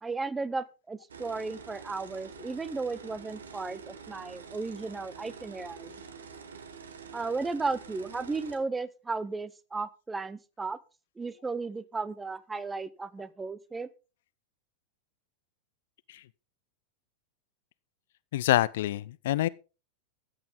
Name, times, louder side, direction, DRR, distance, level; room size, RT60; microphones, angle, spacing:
voice 1, 0.0-5.9 7.1-10.8 11.2-13.9, right 3 dB, 10° right, 0.7 m, -35 dB
sound 1, 1.1-8.6, right 5 dB, 65° right, 1.6 m, -47 dB
voice 2, 18.3-19.5, left 14 dB, 55° left, 0.4 m, -26 dB
14.0 x 8.9 x 3.7 m
figure-of-eight pair, 90°, 0 cm